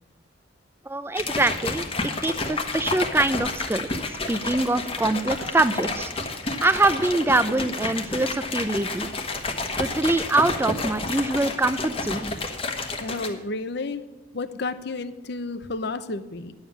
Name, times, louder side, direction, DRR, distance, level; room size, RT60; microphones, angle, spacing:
voice 1, 0.9-6.1 6.6-9.1 9.8-12.3, right 2 dB, 10° right, 12 dB, 0.4 m, -24 dB
sound 1, 1.2-13.3, left 3 dB, 30° left, 1.1 m, -30 dB
voice 2, 13.0-14.0 14.3-16.5, left 3 dB, 55° left, 12 dB, 0.7 m, -31 dB
10.5 x 7.3 x 8.6 m, 1.1 s
head